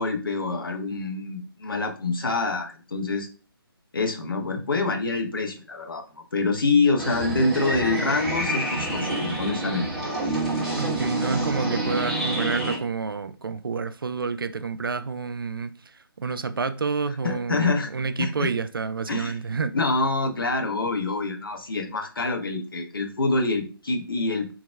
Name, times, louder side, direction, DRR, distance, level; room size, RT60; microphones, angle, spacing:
voice 1, 0.0-3.3 3.9-6.0 6.3-9.9 17.2-17.9 18.2-18.5 19.1-19.3 19.7-24.5, left 3 dB, 60° left, 0.9 m, -26 dB
sound 1, 7.0-12.8, right 1 dB, ahead, 1.1 m, -27 dB
voice 2, 10.8-19.8, right 5 dB, 65° right, 0.5 m, -29 dB
4.5 x 3.9 x 2.2 m
figure-of-eight pair, 145°, 13 cm